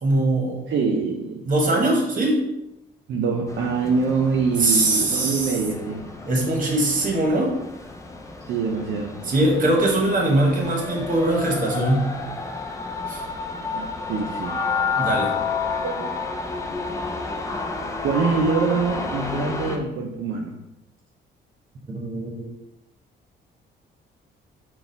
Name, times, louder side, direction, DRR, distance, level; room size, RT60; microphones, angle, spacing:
voice 1, 0.0-0.7 1.5-2.4 4.6-5.5 6.3-7.5 9.3-12.1 13.1-13.2 15.0-15.3 21.9-22.5, right 1 dB, 45° right, 0 dB, 1.2 m, -21 dB
voice 2, 0.7-1.4 3.1-6.1 8.5-9.2 13.7-14.6 15.8-16.1 18.0-20.6, right 4 dB, 65° right, 0 dB, 0.5 m, -24 dB
sound 1, 3.5-19.8, left 4 dB, 15° left, 0.5 m, -31 dB
3.9 x 2.4 x 3.9 m, 0.89 s
cardioid pair, 90°, 20 cm